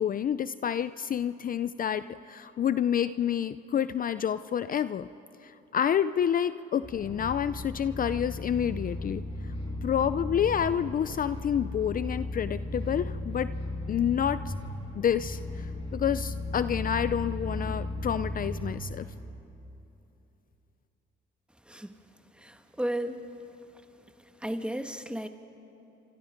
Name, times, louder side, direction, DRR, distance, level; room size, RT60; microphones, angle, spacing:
voice 1, 0.0-5.1 5.4-9.2 9.8-13.5 13.9-14.5 14.9-19.1, left 9 dB, 45° left, 14 dB, 0.5 m, -28 dB
sound 1, 6.8-19.3, left 1 dB, 30° left, 6.6 m, -36 dB
voice 2, 21.7-22.0 22.3-23.2 24.4-25.3, right 1 dB, 5° right, 7 dB, 1.5 m, -34 dB
29.0 x 26.0 x 5.2 m, 2.9 s
cardioid pair, 90°, 20 cm